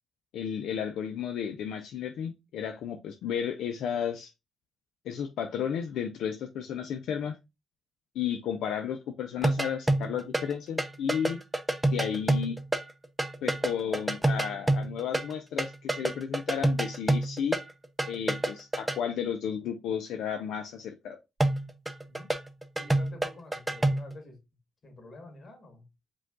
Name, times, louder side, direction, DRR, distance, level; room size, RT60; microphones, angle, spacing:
voice 1, 0.3-4.3 5.0-7.4 8.1-11.4 11.9-12.6 13.4-17.6 18.1-21.2, left 8 dB, 80° left, 0.5 m, -33 dB
sound 1, 9.4-10.5 10.8-15.3 15.6-19.0 21.4-24.2, right 1 dB, 10° right, 0.5 m, -28 dB
voice 2, 22.7-24.4 24.8-25.9, left 2 dB, 40° left, 2.1 m, -48 dB
5.0 x 2.3 x 3.7 m
cardioid pair, 90°, 0 cm